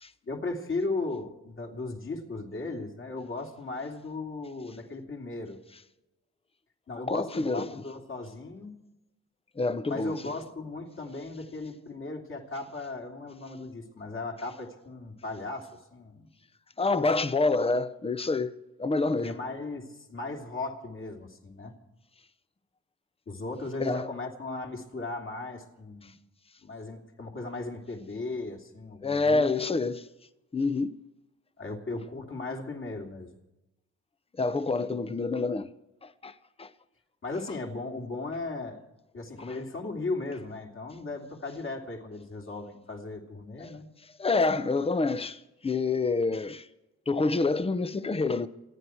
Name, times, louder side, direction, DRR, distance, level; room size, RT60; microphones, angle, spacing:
voice 1, 0.2-5.6 6.9-8.7 9.9-16.3 19.2-21.7 23.3-26.1 26.6-29.5 31.6-33.3 37.2-38.8 39.1-43.9, left 3 dB, 40° left, 3.2 m, -37 dB
voice 2, 7.1-7.7 9.6-10.3 16.8-19.4 23.8-24.1 26.0-26.1 29.0-30.1 30.5-31.0 34.4-35.7 36.0-36.7 43.6-43.7 44.2-46.7 47.1-48.5, left 3 dB, 20° left, 0.8 m, -27 dB
28.0 x 9.9 x 4.6 m
cardioid pair, 90°, 30 cm